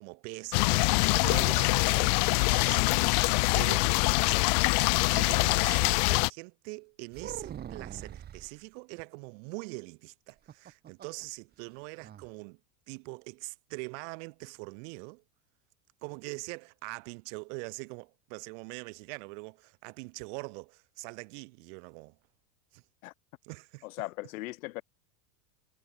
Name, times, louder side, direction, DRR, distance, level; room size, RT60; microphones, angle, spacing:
voice 1, 0.0-3.9 4.8-12.6 12.9-15.2 16.0-22.2 22.7-22.8 23.4-23.8, right 34 dB, 50° right, 5.1 m, -43 dB
sound 1, 0.5-6.3, left 34 dB, 30° left, 0.4 m, -24 dB
sound 2, 7.1-8.6 10.3-11.2 11.5-11.6 12.0-12.3, right 10 dB, 20° right, 3.1 m, -43 dB
voice 2, 23.8-24.8, left 20 dB, 65° left, 2.6 m, -38 dB
supercardioid pair, 165°, 45 cm